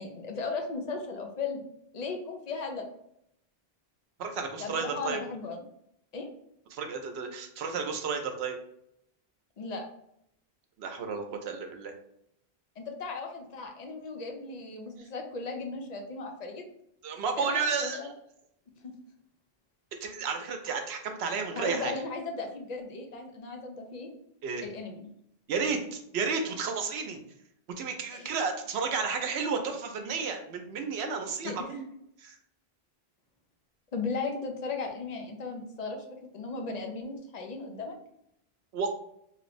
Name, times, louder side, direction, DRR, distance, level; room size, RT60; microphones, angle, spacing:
voice 1, 0.0-1.7 1.9-2.9 4.6-5.6 6.1-6.3 9.6-9.8 12.8-16.6 17.4-18.1 18.8-18.9 21.3-24.1 24.6-25.1 28.1-28.3 31.4-31.6 33.9-38.0, left 4 dB, 50° left, 3 dB, 0.6 m, -36 dB
voice 2, 4.2-5.2 6.7-8.6 10.8-11.9 17.0-18.1 20.0-21.9 24.4-24.6 25.5-27.2 27.8-31.9 32.2-32.4 38.7-39.0, right 5 dB, 80° right, 5 dB, 0.9 m, -32 dB
3.0 x 2.5 x 3.0 m, 0.75 s
omnidirectional pair, 1.1 m